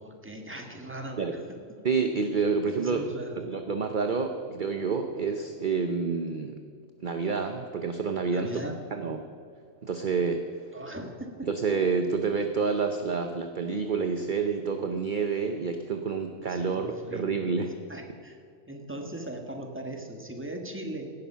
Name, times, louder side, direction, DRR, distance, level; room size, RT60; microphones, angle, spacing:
voice 1, 0.0-1.4 1.7-1.8 2.7-3.6 8.3-8.8 10.7-11.5 16.4-17.3 17.9-18.4 18.7-21.1, right 1 dB, 10° right, 3 dB, 1.6 m, -39 dB
voice 2, 1.8-3.0 3.4-6.6 7.0-8.6 8.9-9.2 9.8-10.4 11.4-17.8, right 5 dB, 45° right, 6 dB, 0.9 m, -28 dB
17.5 x 11.0 x 5.7 m, 2.4 s
omnidirectional pair, 1.4 m